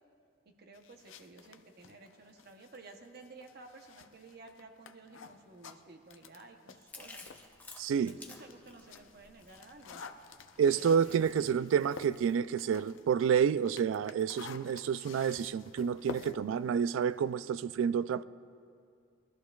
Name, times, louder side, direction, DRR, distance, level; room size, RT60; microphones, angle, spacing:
voice 1, 0.5-7.3 8.0-10.0 10.6-11.3, right 3 dB, 55° right, 0.9 m, -54 dB
sound 1, 0.7-7.5 7.9-17.7, left 5 dB, 80° left, 0.5 m, -50 dB
Chewing mastication, 6.9-12.4, left 3 dB, 10° left, 0.8 m, -54 dB
voice 2, 7.8-8.1 10.6-18.2, right 7 dB, 85° right, 0.3 m, -29 dB
22.0 x 13.0 x 2.3 m
head